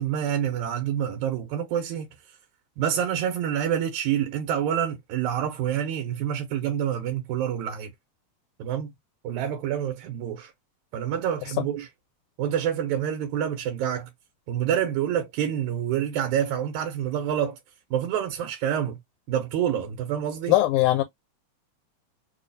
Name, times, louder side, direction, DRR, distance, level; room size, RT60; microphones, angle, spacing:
voice 1, 0.0-2.1 2.8-7.9 8.6-8.9 9.2-10.5 10.9-11.9 12.4-14.1 14.5-17.6 17.9-19.0 19.3-20.5, right 9 dB, 85° right, 2.1 m, -27 dB
voice 2, 20.5-21.0, left 15 dB, 85° left, 2.0 m, -20 dB
4.6 x 2.3 x 2.6 m
omnidirectional pair, 3.4 m